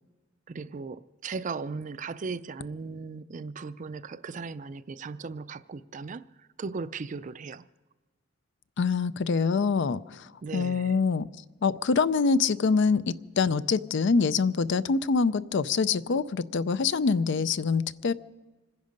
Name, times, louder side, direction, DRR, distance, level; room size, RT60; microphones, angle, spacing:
voice 1, 0.5-6.3 6.6-7.6 10.4-11.0, right 4 dB, 40° right, 0.4 m, -37 dB
voice 2, 8.8-10.3 10.5-11.3 11.6-18.1, left 5 dB, 60° left, 0.5 m, -25 dB
26.0 x 10.5 x 5.2 m
head